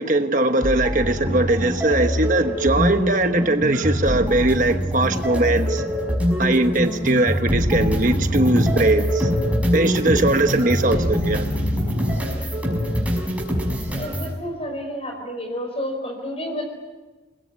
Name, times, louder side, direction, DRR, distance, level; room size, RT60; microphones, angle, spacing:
voice 1, 0.0-5.8 6.4-9.4 9.7-11.5, right 2 dB, 45° right, 7 dB, 1.2 m, -20 dB
sound 1, 0.6-14.3, equal, 10° right, 6.1 m, -23 dB
voice 2, 13.9-16.7, equal, 35° left, 2 dB, 4.8 m, -30 dB
29.5 x 21.0 x 9.6 m, 1.2 s
head